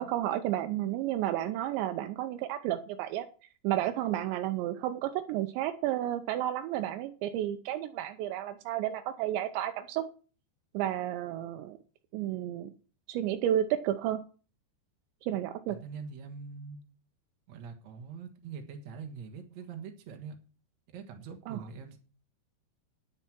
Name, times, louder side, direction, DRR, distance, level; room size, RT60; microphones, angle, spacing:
voice 1, 0.0-3.3 3.6-10.0 10.7-11.8 12.1-12.7 13.1-14.2 15.2-15.8 21.5-21.6, right 12 dB, 85° right, 7 dB, 3.1 m, -31 dB
voice 2, 15.7-16.8 17.5-20.4 20.9-22.0, right 5 dB, 55° right, 4 dB, 2.1 m, -43 dB
9.8 x 9.6 x 6.1 m, 0.38 s
omnidirectional pair, 5.1 m